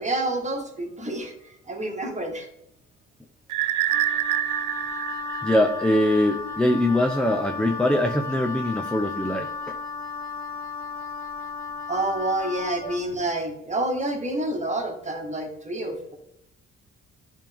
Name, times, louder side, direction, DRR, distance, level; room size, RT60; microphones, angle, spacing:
voice 1, 0.0-1.3 1.7-2.5 11.9-16.2, right 1 dB, 25° right, 3 dB, 1.5 m, -28 dB
sound 1, 3.5-6.3, right 13 dB, 85° right, 0.5 m, -27 dB
Wind instrument woodwind instrument, 3.9-13.1, left 4 dB, 65° left, 1.3 m, -34 dB
voice 2, 5.4-9.8, left 1 dB, 5° left, 4 dB, 0.5 m, -22 dB
10.5 x 3.5 x 3.5 m, 0.82 s
cardioid pair, 90°, 30 cm